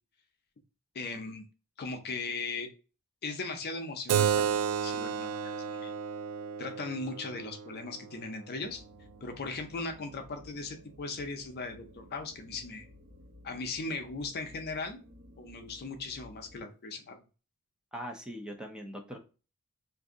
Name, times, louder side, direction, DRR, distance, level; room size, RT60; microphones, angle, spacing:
voice 1, 0.9-1.4 1.8-2.7 3.2-5.9 6.6-8.8 9.2-12.8 13.4-15.0 15.4-17.2, left 3 dB, 45° left, 5 dB, 0.5 m, -38 dB
Keyboard (musical), 4.1-9.2, right 8 dB, 85° right, 0.3 m, -32 dB
sound 1, 8.6-16.6, left 1 dB, 55° right, 1.3 m, -55 dB
voice 2, 17.9-19.2, equal, 5° right, 3 dB, 0.5 m, -41 dB
2.6 x 2.5 x 3.6 m, 0.33 s
head